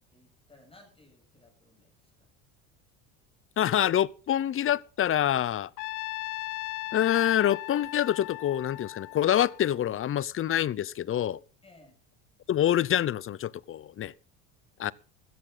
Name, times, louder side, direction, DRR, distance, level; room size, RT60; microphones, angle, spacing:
voice 1, 0.0-2.3 11.6-11.9, left 2 dB, 15° left, 7.4 m, -58 dB
voice 2, 3.6-5.7 6.9-11.4 12.5-14.1 14.8-14.9, left 11 dB, 35° left, 0.6 m, -26 dB
Trumpet, 5.8-10.0, left 21 dB, 75° left, 0.8 m, -38 dB
16.5 x 14.0 x 3.9 m
supercardioid pair, 105°, 39 cm